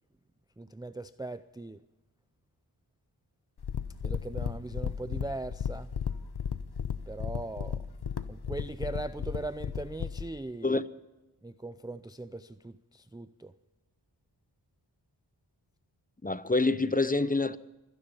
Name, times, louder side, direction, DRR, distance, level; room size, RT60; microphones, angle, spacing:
voice 1, 0.6-1.8 4.0-5.9 7.1-7.8 8.3-10.8 11.4-13.5, right 2 dB, 10° right, 0.4 m, -39 dB
sound 1, 3.6-10.3, left 7 dB, 55° left, 0.8 m, -35 dB
voice 2, 16.2-17.6, left 3 dB, 20° left, 0.7 m, -26 dB
25.0 x 10.0 x 5.4 m
wide cardioid pair, 40°, 46 cm